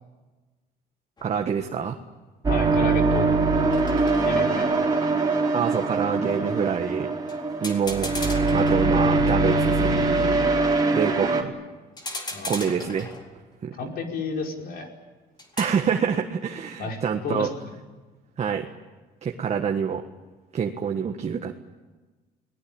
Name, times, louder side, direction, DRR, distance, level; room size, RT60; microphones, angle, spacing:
sound 1, 1.2-1.4 3.7-4.7 7.3-7.4 7.6-9.4 12.0-13.5 15.4-15.9, left 2 dB, 25° left, 4.1 m, -37 dB
voice 1, 1.2-2.0 5.5-7.1 7.6-8.1 8.5-10.5 10.9-11.5 12.5-13.1 13.6-13.8 15.6-17.5 18.4-18.7 19.2-20.0 20.5-21.6, right 7 dB, 40° right, 4 dB, 1.6 m, -26 dB
voice 2, 2.4-3.4 4.2-4.9 12.3-12.8 13.8-14.9 16.8-17.0 17.2-17.5, left 4 dB, 65° left, 2 dB, 5.2 m, -31 dB
sound 2, 2.4-11.4, right 3 dB, 25° right, 4.2 m, -22 dB
29.5 x 19.5 x 8.9 m, 1.3 s
cardioid pair, 110°, 17 cm